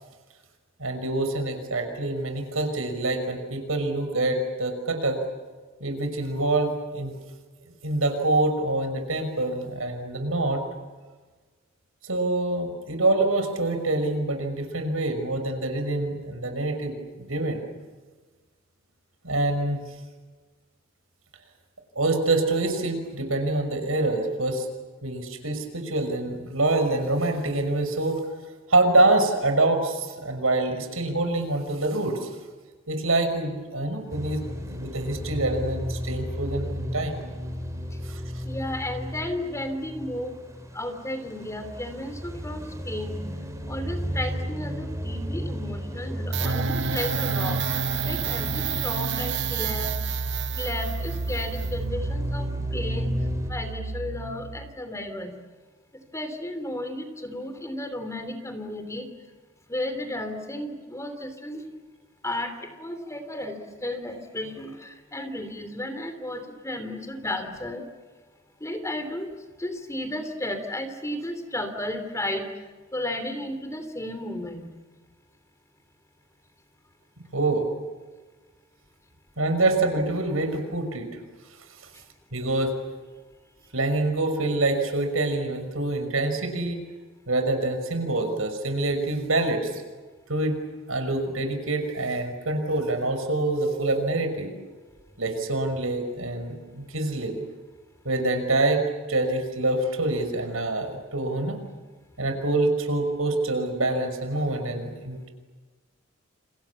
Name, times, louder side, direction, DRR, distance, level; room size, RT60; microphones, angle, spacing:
voice 1, 0.8-5.2 5.8-7.1 7.8-10.6 12.0-17.6 19.2-19.8 22.0-24.7 25.0-28.2 28.7-32.3 32.9-34.4 34.7-37.2 38.0-38.4 77.2-77.7 79.4-81.1 82.3-82.7 83.7-86.8 87.3-89.8 90.3-90.6 90.9-94.5 95.2-97.4 98.0-101.6 102.2-105.3, right 2 dB, 90° right, 6 dB, 5.9 m, -26 dB
sound 1, 34.1-53.5, equal, 15° right, 3.9 m, -34 dB
voice 2, 38.4-40.4 40.7-43.2 43.7-47.6 48.0-49.9 50.6-53.1 53.5-55.3 56.1-59.1 59.7-61.6 62.2-67.8 68.6-69.3 69.6-72.5 72.9-74.7, left 1 dB, 15° left, 8 dB, 3.3 m, -33 dB
sound 2, 46.3-54.8, right 5 dB, 60° right, 0.8 m, -29 dB
29.0 x 28.5 x 7.2 m, 1.3 s
head